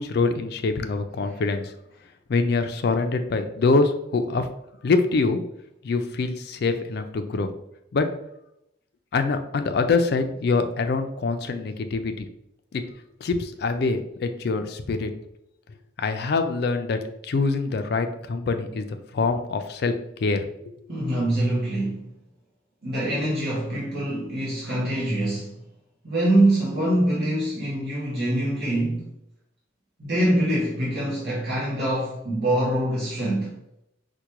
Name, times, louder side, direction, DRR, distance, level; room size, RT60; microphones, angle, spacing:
voice 1, 0.0-1.7 2.3-4.5 4.8-5.4 5.8-7.5 7.9-8.1 9.1-12.3 12.7-12.8 13.2-15.1 16.0-19.9 20.2-20.5, left 3 dB, 55° left, 7 dB, 0.3 m, -24 dB
voice 2, 20.9-22.1 22.8-25.6 26.0-29.1 30.0-33.6, right 1 dB, 55° right, -7 dB, 0.9 m, -24 dB
4.7 x 2.2 x 2.9 m, 0.81 s
head